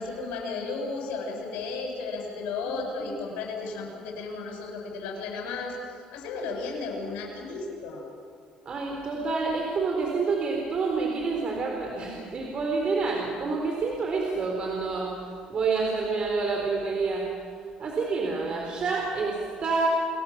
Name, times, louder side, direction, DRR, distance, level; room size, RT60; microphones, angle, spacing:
voice 1, 0.0-8.0, left 3 dB, 90° left, -1 dB, 7.1 m, -34 dB
voice 2, 8.7-15.1 15.5-17.3 17.8-19.9, right 4 dB, 45° right, 0 dB, 4.3 m, -28 dB
29.5 x 21.5 x 7.4 m, 2.4 s
cardioid pair, 110°, 2 cm